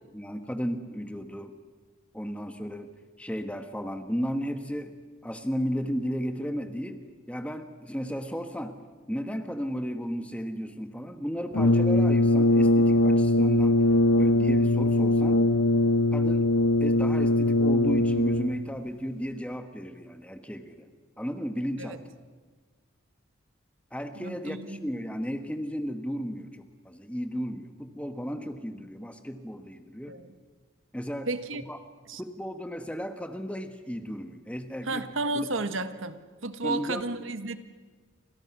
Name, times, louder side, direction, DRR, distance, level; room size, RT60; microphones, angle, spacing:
voice 1, 0.1-1.5 2.1-2.9 3.2-4.9 5.2-7.0 7.3-8.8 9.1-13.8 14.1-15.4 16.1-16.5 16.8-20.9 21.2-22.0 23.9-30.1 30.9-31.3 31.5-31.8 32.2-35.1 35.3-35.4 36.6-37.1, equal, 5° left, 7 dB, 1.5 m, -34 dB
Brass instrument, 11.5-18.7, left 1 dB, 85° left, 1.3 m, -21 dB
voice 2, 24.1-24.9 30.1-30.3 31.3-31.6 32.1-32.2 34.8-37.6, right 2 dB, 75° right, 10 dB, 1.5 m, -32 dB
29.5 x 26.5 x 6.1 m, 1.4 s
head